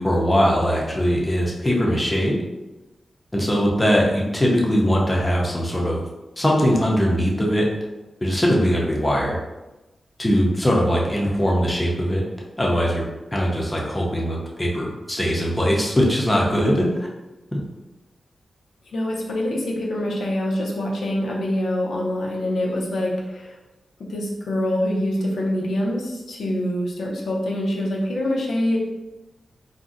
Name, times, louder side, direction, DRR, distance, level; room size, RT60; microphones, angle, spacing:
voice 1, 0.0-2.4 3.3-6.0 6.4-7.7 8.2-9.4 10.2-12.2 12.6-13.0 13.3-17.1 17.5-17.6, equal, 15° left, -2 dB, 0.5 m, -21 dB
voice 2, 18.9-23.6 24.0-28.8, left 1 dB, 85° left, -3 dB, 0.6 m, -25 dB
2.5 x 2.0 x 3.7 m, 1.0 s
wide cardioid pair, 170°, 0 cm